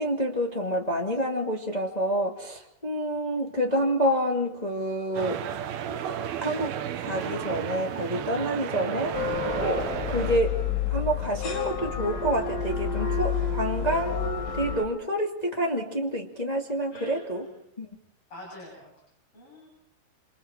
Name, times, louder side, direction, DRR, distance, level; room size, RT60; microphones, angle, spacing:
voice 1, 0.0-5.4 6.4-6.7 7.0-9.1 9.6-10.6 10.9-17.4 17.8-17.9, right 1 dB, 60° left, 0 dB, 0.4 m, -28 dB
sound 1, 5.1-10.4, right 9 dB, 70° right, 2.7 m, -32 dB
sound 2, 9.1-14.8, left 7 dB, 85° left, 6.4 m, -29 dB
voice 2, 16.9-17.6 18.3-18.9 19.3-19.7, equal, 30° left, -3 dB, 8.9 m, -45 dB
28.5 x 28.0 x 4.5 m, 0.70 s
omnidirectional pair, 5.3 m